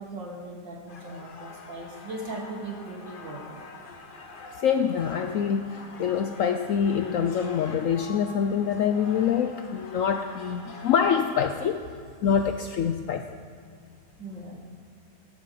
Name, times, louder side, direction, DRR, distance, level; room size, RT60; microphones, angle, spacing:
voice 1, 0.0-3.6 14.2-14.6, right 2 dB, 90° right, 0 dB, 2.5 m, -38 dB
sound 1, 0.9-11.1, left 3 dB, 35° left, 1.0 m, -45 dB
voice 2, 4.6-11.8 12.2-13.2, left 7 dB, 75° left, 7 dB, 0.7 m, -25 dB
13.0 x 12.0 x 5.1 m, 2.2 s
omnidirectional pair, 1.9 m